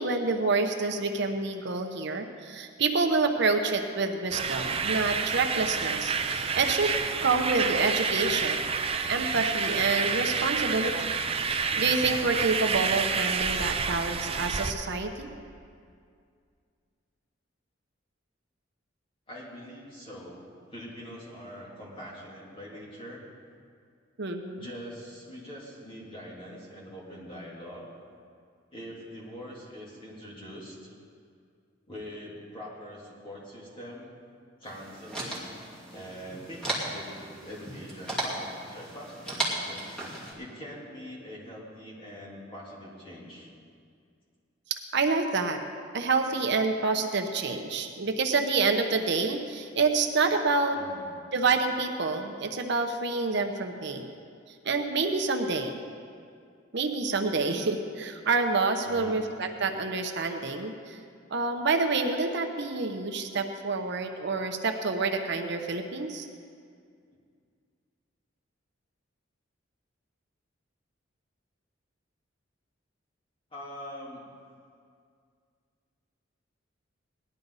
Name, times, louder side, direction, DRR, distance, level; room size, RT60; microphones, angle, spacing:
voice 1, 0.0-6.9 7.2-8.7 9.1-11.1 11.8-15.3 24.2-24.7 44.9-45.6 45.9-50.8 51.3-54.1 54.6-55.8 56.7-61.0 61.3-66.3, right 3 dB, 60° right, 5 dB, 0.9 m, -27 dB
sound 1, 4.3-14.7, right 5 dB, 30° right, 0.5 m, -29 dB
voice 2, 19.3-20.4 20.7-23.3 24.6-27.9 28.7-30.9 31.9-34.1 34.6-35.5 35.9-39.9 40.3-43.5 50.7-51.2 58.8-59.2 73.5-74.2, equal, 25° left, -5 dB, 3.1 m, -43 dB
sound 2, 34.6-40.3, right 1 dB, 5° left, 2.5 m, -36 dB
18.5 x 11.5 x 4.1 m, 2.2 s
head